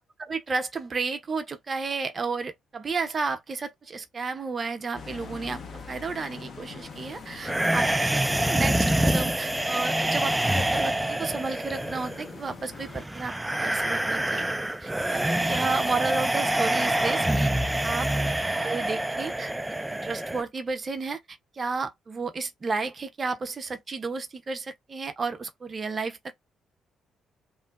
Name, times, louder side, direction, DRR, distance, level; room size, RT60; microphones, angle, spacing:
voice 1, 0.3-14.5 14.8-17.5 17.8-18.1 18.5-19.5 19.9-21.2 21.5-26.4, right 4 dB, 40° right, 0.7 m, -32 dB
sound 1, 4.9-13.1, left 5 dB, 50° left, 0.6 m, -44 dB
sound 2, 7.4-20.4, right 1 dB, 10° right, 0.3 m, -26 dB
3.1 x 2.4 x 2.3 m
figure-of-eight pair, 40°, 0 cm